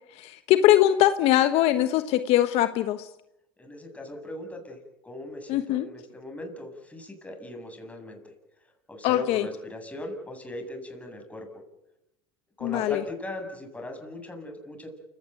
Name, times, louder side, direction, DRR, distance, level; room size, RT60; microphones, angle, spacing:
voice 1, 0.2-3.1 5.5-5.9 9.0-9.4 12.6-13.0, left 13 dB, 60° left, 10 dB, 1.3 m, -22 dB
voice 2, 3.6-4.8 5.0-8.3 8.9-11.5 12.6-14.9, left 1 dB, 10° left, 4 dB, 7.9 m, -39 dB
28.5 x 17.5 x 9.2 m, 0.90 s
supercardioid pair, 95°, 11 cm